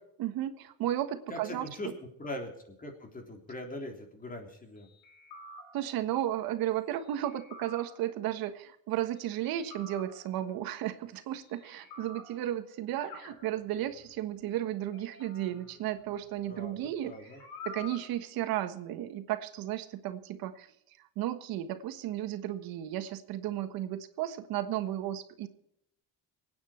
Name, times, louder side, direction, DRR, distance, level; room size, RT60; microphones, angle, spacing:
voice 1, 0.2-1.9 5.7-17.1 17.6-20.7 21.2-25.5, right 12 dB, 80° right, 10 dB, 1.5 m, -34 dB
voice 2, 1.3-4.9 16.4-17.4, left 1 dB, 25° left, 4 dB, 3.4 m, -41 dB
sound 1, 5.0-6.1 7.2-8.3 9.4-10.5 11.6-12.7 13.0-14.1 14.9-16.8 17.1-18.1, left 3 dB, 80° left, 5.3 m, -49 dB
24.5 x 9.5 x 4.5 m, 0.77 s
cardioid pair, 135°, 35 cm